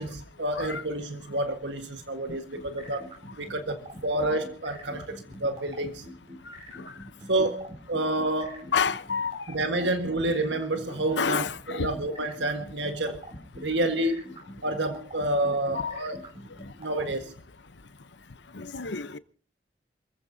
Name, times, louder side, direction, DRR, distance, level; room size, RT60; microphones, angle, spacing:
voice 1, 0.0-3.1 3.4-6.1 7.3-8.7 9.5-13.2 13.6-14.3 14.6-16.2 16.8-17.3, right 1 dB, 85° right, 1.6 m, -29 dB
sound 1, 2.3-17.1, equal, 35° right, 5.6 m, -44 dB
voice 2, 8.7-9.4 11.2-11.9 15.7-15.9 18.6-19.2, left 5 dB, 85° left, 0.9 m, -28 dB
28.0 x 15.0 x 2.8 m
head